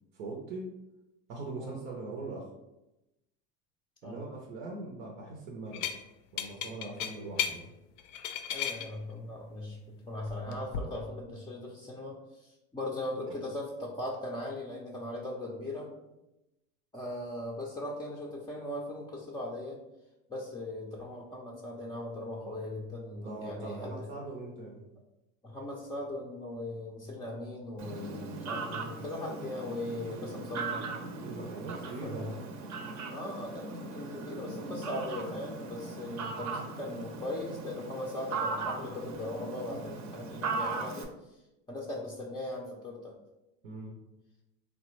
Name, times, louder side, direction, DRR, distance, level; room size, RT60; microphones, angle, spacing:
voice 1, 0.1-0.7 1.3-2.5 4.0-5.9 6.3-7.7 23.2-24.9 30.0-30.3 31.2-32.4 43.6-44.0, right 3 dB, 85° right, -1 dB, 0.7 m, -41 dB
sound 1, 5.7-6.0 6.4-7.6 8.0-8.9 10.3-10.8, left 9 dB, 70° left, 0.5 m, -34 dB
voice 2, 8.5-15.9 16.9-19.8 20.3-24.1 25.4-30.9 32.0-32.3 33.1-41.4 41.7-43.1, left 1 dB, 10° left, -4 dB, 0.4 m, -39 dB
Fowl, 27.8-41.0, right 3 dB, 45° right, 0.6 m, -38 dB
3.4 x 2.1 x 3.0 m, 0.94 s
hypercardioid pair, 90°, 39 cm